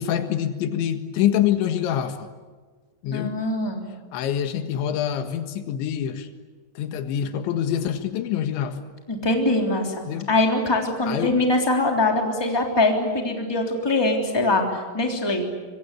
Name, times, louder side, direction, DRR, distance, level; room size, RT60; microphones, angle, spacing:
voice 1, 0.0-2.3 3.0-3.4 4.1-6.3 6.8-8.8 10.1-10.3 11.1-11.4, left 10 dB, 80° left, 8 dB, 3.9 m, -25 dB
voice 2, 3.1-3.9 9.1-15.5, left 2 dB, 5° left, 2 dB, 2.6 m, -23 dB
25.0 x 25.0 x 8.4 m, 1.4 s
omnidirectional pair, 5.3 m